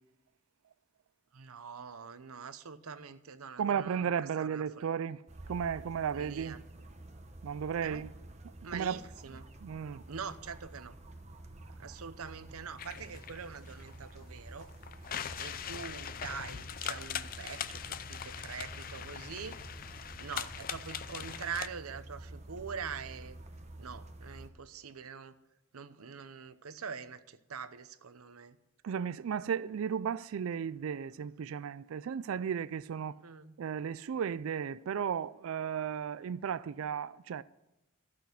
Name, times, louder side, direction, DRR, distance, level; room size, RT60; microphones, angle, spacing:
voice 1, 1.3-4.9 6.1-6.6 7.8-8.0 8.6-9.5 10.1-11.0 11.8-14.7 15.4-19.6 19.9-23.4 23.8-25.4 25.7-28.6 33.2-33.6 36.7-36.9, right 6 dB, 90° right, 0.8 m, -44 dB
voice 2, 3.6-5.2 5.5-6.6 7.4-8.1 8.7-10.0 28.8-33.2 33.6-37.4, right 7 dB, 70° right, 0.3 m, -35 dB
sound 1, 5.3-24.5, right 1 dB, 30° right, 0.8 m, -50 dB
sound 2, 12.8-21.7, left 8 dB, 40° left, 0.4 m, -41 dB
13.5 x 6.2 x 8.2 m
head